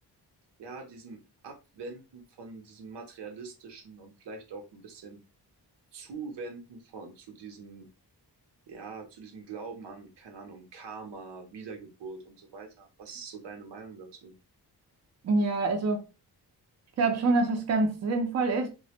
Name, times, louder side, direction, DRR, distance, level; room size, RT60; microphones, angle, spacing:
voice 1, 0.6-1.2 1.4-5.2 5.9-7.9 8.7-14.3, right 4 dB, 90° right, 0.7 m, -43 dB
voice 2, 15.2-16.1 17.0-18.7, right 3 dB, 40° right, 0.6 m, -26 dB
2.2 x 2.1 x 2.8 m
wide cardioid pair, 110°, 41 cm